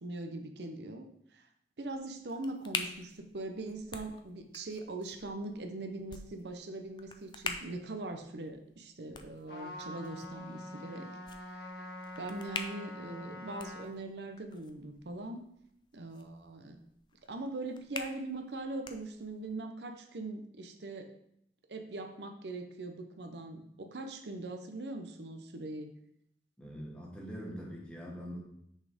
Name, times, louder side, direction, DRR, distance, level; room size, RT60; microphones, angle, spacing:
voice 1, 0.0-1.5 1.8-11.1 11.5-11.9 12.2-15.4 15.9-16.8 17.3-21.1 21.7-25.9, right 2 dB, 80° right, 5 dB, 0.7 m, -41 dB
sound 1, 1.8-19.6, left 4 dB, 25° left, 0.4 m, -46 dB
Trumpet, 9.5-13.9, left 1 dB, 70° left, 1.6 m, -45 dB
voice 2, 26.6-28.4, equal, 5° left, -3 dB, 1.4 m, -43 dB
6.2 x 4.2 x 5.0 m, 0.73 s
head